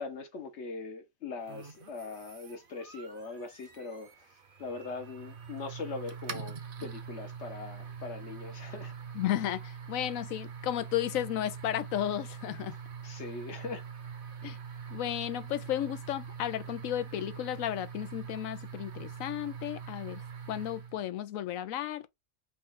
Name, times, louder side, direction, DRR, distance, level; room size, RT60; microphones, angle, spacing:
voice 1, 0.0-4.3 4.6-8.9 13.0-13.8, left 4 dB, 60° left, 1.2 m, -41 dB
sound 1, 1.5-21.0, right 6 dB, 45° right, 0.9 m, -44 dB
voice 2, 9.1-12.7 14.4-14.6 14.9-20.2 20.5-22.1, left 12 dB, 80° left, 1.0 m, -33 dB
5.4 x 2.4 x 4.1 m
omnidirectional pair, 1.4 m